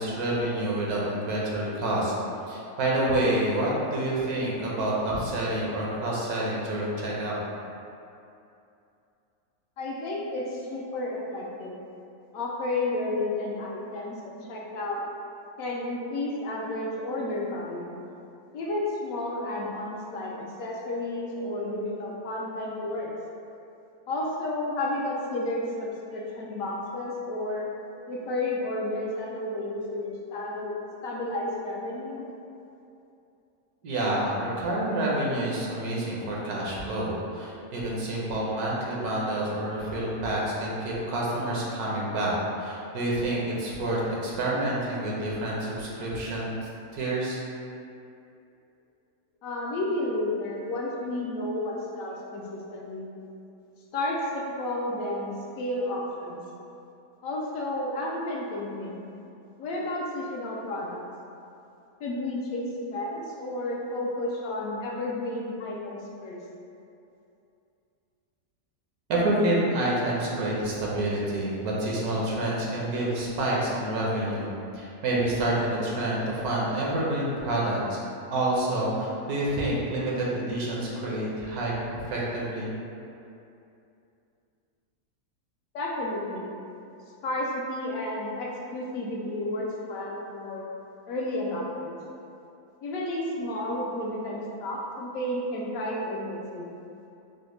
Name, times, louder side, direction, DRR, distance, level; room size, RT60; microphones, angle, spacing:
voice 1, 0.0-2.1 2.5-7.4 33.8-46.5 46.9-47.4 69.1-74.5 74.7-78.0 78.3-82.7, right 1 dB, 80° right, -5 dB, 1.2 m, -28 dB
voice 2, 9.8-11.8 12.3-15.0 15.6-18.0 18.5-23.1 24.1-27.7 28.1-30.7 31.0-32.2 49.4-53.1 53.9-56.4 57.2-59.0 59.6-61.1 62.0-66.4 85.7-86.6 87.2-90.7 91.1-92.0 92.8-96.7, left 1 dB, 70° left, -3 dB, 0.9 m, -32 dB
4.9 x 2.1 x 3.1 m, 2.7 s
omnidirectional pair, 1.6 m